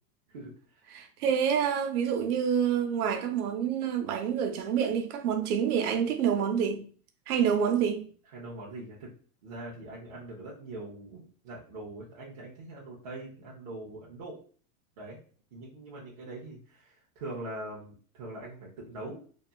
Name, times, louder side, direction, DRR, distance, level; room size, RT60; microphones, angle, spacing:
voice 1, 0.3-0.8 8.3-9.1 9.4-14.4 15.0-15.2 15.5-19.2, right 2 dB, 30° right, 0.3 m, -42 dB
voice 2, 0.9-6.8 7.3-8.0, right 8 dB, 75° right, 0.7 m, -27 dB
2.8 x 2.3 x 2.2 m
supercardioid pair, 160°, 45 cm